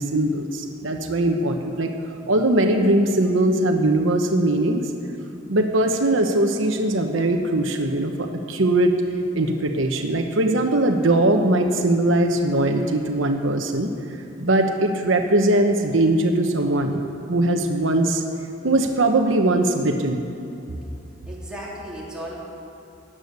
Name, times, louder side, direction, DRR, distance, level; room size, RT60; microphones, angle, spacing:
voice 1, 0.0-1.9 2.3-4.9 5.5-8.9 9.3-13.9 14.4-16.9 17.3-18.2 18.6-20.2, right 1 dB, 80° right, 4 dB, 1.1 m, -20 dB
voice 2, 21.3-22.3, right 1 dB, 5° right, -6 dB, 3.1 m, -35 dB
16.0 x 10.0 x 6.7 m, 2.9 s
head